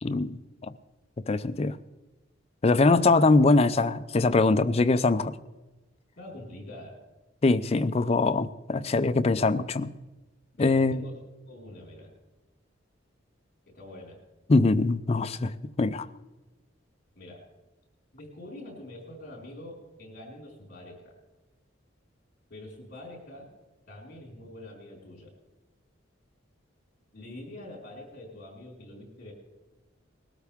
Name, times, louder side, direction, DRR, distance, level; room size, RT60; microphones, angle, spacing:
voice 1, 0.0-0.4 1.3-1.8 2.6-5.4 7.4-9.9 10.6-11.0 14.5-15.5 15.8-16.1, left 3 dB, 30° left, 0.4 m, -22 dB
voice 2, 6.2-7.0 10.6-11.2 11.5-12.1 13.7-14.2 17.1-17.5 18.1-21.1 22.5-23.5 23.9-25.3 27.1-29.3, left 1 dB, 50° left, 4.7 m, -45 dB
20.5 x 13.0 x 3.6 m
head